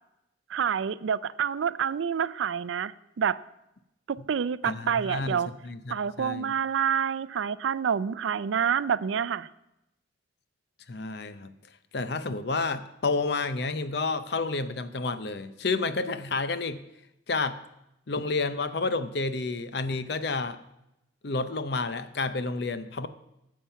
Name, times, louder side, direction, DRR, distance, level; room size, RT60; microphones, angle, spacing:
voice 1, 0.5-3.4 4.1-5.5 5.9-9.5, right 7 dB, 75° right, 18 dB, 0.4 m, -28 dB
voice 2, 4.6-5.4 5.6-6.5 10.9-11.5 11.9-16.8 17.3-17.6 18.1-20.6 21.2-23.1, left 3 dB, 55° left, 12 dB, 0.6 m, -30 dB
12.5 x 7.4 x 5.6 m, 0.88 s
head